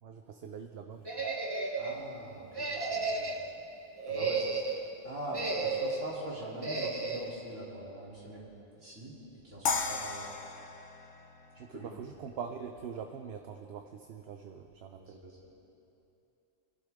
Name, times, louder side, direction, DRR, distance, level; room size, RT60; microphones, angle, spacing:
voice 1, 0.0-1.1 4.2-4.3 11.6-15.2, right 7 dB, 60° right, 5 dB, 0.9 m, -43 dB
sound 1, 1.1-2.0 2.5-3.5 4.0-4.8 5.3-6.1 6.6-7.3, right 3 dB, 20° right, 0.9 m, -33 dB
voice 2, 1.8-3.4 4.1-8.5 8.8-10.2 11.7-11.9 14.9-15.4, right 1 dB, 85° right, -7 dB, 3.9 m, -43 dB
sound 2, 9.7-12.7, left 5 dB, 70° left, 1.2 m, -36 dB
25.5 x 12.0 x 3.6 m, 2.9 s
omnidirectional pair, 1.2 m